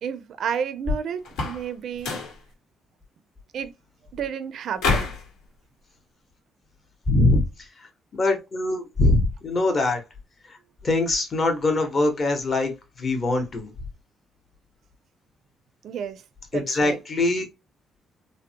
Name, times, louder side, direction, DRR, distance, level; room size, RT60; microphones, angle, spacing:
voice 1, 0.0-2.1 3.5-3.7 4.1-5.1 15.8-16.2 16.5-17.0, right 8 dB, 50° right, 0.4 m, -31 dB
sound 1, 1.2-1.7 2.0-2.4 4.8-5.3, left 4 dB, 85° left, 1.1 m, -26 dB
voice 2, 7.1-7.4 8.1-10.0 10.8-12.7 13.0-13.7 16.5-17.4, left 2 dB, 25° left, 0.8 m, -22 dB
3.5 x 2.0 x 2.7 m
cardioid pair, 175°, 0 cm